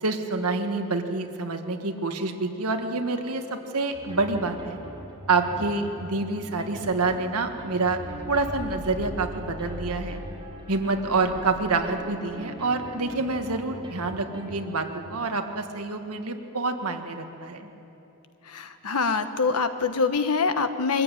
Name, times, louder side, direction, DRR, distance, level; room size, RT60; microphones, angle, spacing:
voice 1, 0.0-4.8 5.3-8.0 8.3-10.2 10.7-17.7, right 3 dB, 80° right, 5 dB, 1.7 m, -27 dB
sound 1, 3.9-15.1, equal, 25° right, 3.7 m, -40 dB
voice 2, 18.5-21.0, left 4 dB, 85° left, 9 dB, 1.2 m, -25 dB
23.0 x 14.5 x 9.3 m, 2.9 s
head